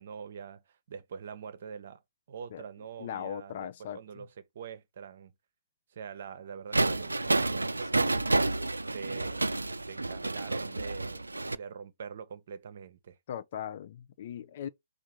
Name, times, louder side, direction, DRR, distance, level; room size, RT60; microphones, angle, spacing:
voice 1, 0.0-2.0 2.3-3.7 3.9-5.3 5.9-8.7 8.9-9.4 9.8-13.2, right 6 dB, 55° right, 0.8 m, -44 dB
voice 2, 3.0-4.2 7.9-8.2 13.3-14.7, left 10 dB, 50° left, 0.5 m, -39 dB
sound 1, 6.7-11.6, right 2 dB, 85° right, 0.3 m, -29 dB
4.8 x 2.5 x 4.4 m
figure-of-eight pair, 120°, 0 cm